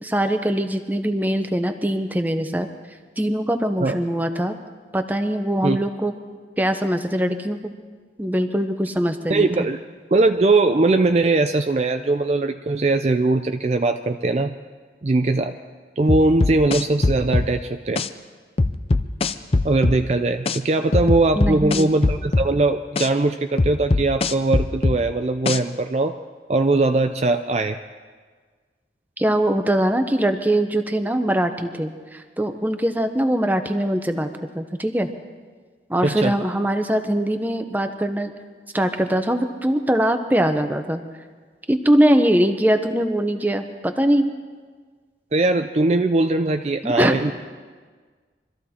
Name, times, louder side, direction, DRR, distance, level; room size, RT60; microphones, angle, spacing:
voice 1, 0.0-2.7 3.2-4.5 4.9-6.1 6.6-7.6 8.2-9.7 21.4-21.9 29.2-34.3 34.5-35.1 35.9-38.3 38.7-41.0 41.7-44.3 46.8-47.3, right 1 dB, 10° right, 7 dB, 0.8 m, -22 dB
voice 2, 9.3-9.8 10.1-14.5 15.0-15.6 16.0-18.0 19.6-26.2 26.5-27.8 36.0-36.3 45.3-47.3, right 2 dB, 35° right, 7 dB, 0.4 m, -20 dB
sound 1, 16.1-17.5 18.0-18.1 18.6-20.0 20.5-20.6 20.9-22.5 23.0-23.1 23.6-25.0 25.5-25.6, left 2 dB, 35° left, 0.5 m, -20 dB
24.0 x 14.0 x 4.3 m, 1.5 s
head